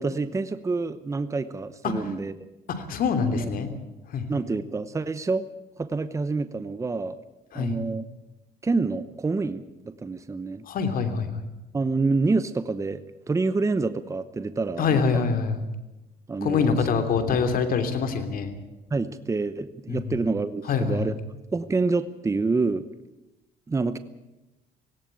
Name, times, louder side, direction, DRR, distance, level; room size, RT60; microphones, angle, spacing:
voice 1, 0.0-2.3 3.4-3.5 4.3-5.5 5.8-7.2 7.5-8.0 8.6-10.6 11.7-15.2 16.3-16.8 18.9-21.1 21.5-22.8 23.7-24.0, right 3 dB, 20° right, 12 dB, 0.9 m, -27 dB
voice 2, 2.8-3.7 4.1-4.3 7.5-7.8 10.7-11.4 14.8-15.6 16.4-18.5 19.9-20.2 20.6-21.1, left 5 dB, 60° left, 8 dB, 3.1 m, -25 dB
18.0 x 17.5 x 9.0 m, 0.99 s
cardioid pair, 110°, 17 cm